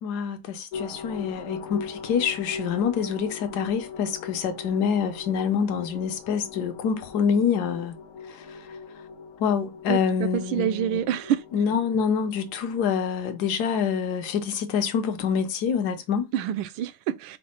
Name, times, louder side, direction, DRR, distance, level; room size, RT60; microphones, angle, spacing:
voice 1, 0.0-7.9 8.3-8.7 9.4-11.1 11.5-16.3, left 7 dB, 65° left, 1.0 m, -26 dB
sound 1, 0.7-14.5, left 5 dB, 85° left, 1.5 m, -40 dB
voice 2, 9.9-11.4 16.3-17.4, right 10 dB, 80° right, 1.3 m, -27 dB
5.2 x 2.1 x 4.3 m
omnidirectional pair, 2.3 m